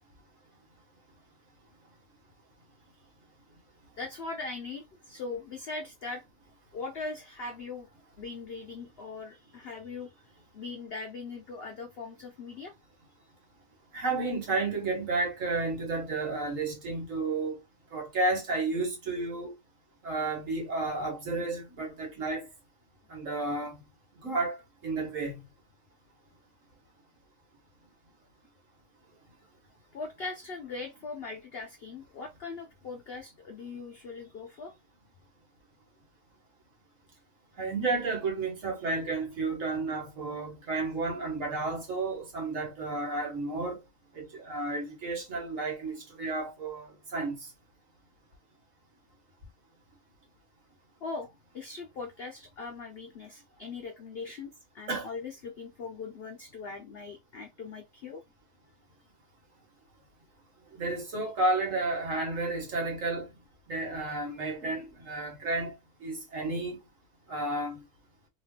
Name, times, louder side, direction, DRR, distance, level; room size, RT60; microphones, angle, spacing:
voice 1, 4.0-6.2 6.7-7.9 8.2-10.1 10.5-12.7 29.9-34.7 51.0-58.2, left 4 dB, 80° left, 0.5 m, -40 dB
voice 2, 13.9-17.6 17.9-19.5 20.0-22.5 23.1-23.8 24.2-24.6 24.8-25.4 37.6-43.8 44.1-47.4 54.9-55.1 60.8-63.3 63.7-65.7 66.0-66.8 67.3-67.8, right 3 dB, 55° right, 1.5 m, -32 dB
3.1 x 2.3 x 3.5 m
omnidirectional pair, 1.7 m